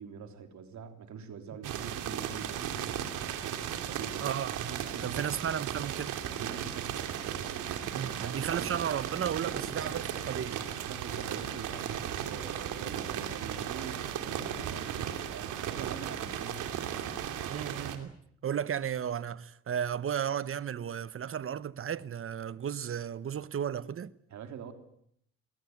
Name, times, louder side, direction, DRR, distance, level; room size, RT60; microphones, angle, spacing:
voice 1, 0.0-2.8 3.9-4.3 4.9-5.3 6.3-8.7 10.7-16.7 24.3-24.7, right 6 dB, 70° right, 3.5 m, -44 dB
sound 1, 1.6-18.0, right 9 dB, 90° right, 2.8 m, -36 dB
voice 2, 4.2-6.2 7.9-10.6 17.5-18.2 18.4-24.1, right 8 dB, 45° right, 1.0 m, -34 dB
21.5 x 18.5 x 9.3 m
cardioid pair, 90°, 30 cm